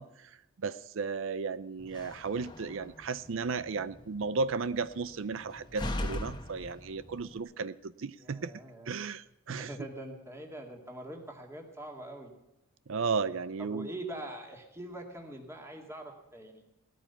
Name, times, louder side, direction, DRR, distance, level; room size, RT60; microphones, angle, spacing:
voice 1, 0.0-8.5 8.9-9.7 12.9-13.9, right 4 dB, 65° right, 15 dB, 0.5 m, -34 dB
Slam, 1.8-7.4, left 1 dB, 20° left, 1.2 m, -41 dB
voice 2, 8.2-8.9 9.5-12.3 12.9-16.6, right 1 dB, 10° right, 1 dB, 2.1 m, -44 dB
17.0 x 13.5 x 5.7 m, 0.93 s
head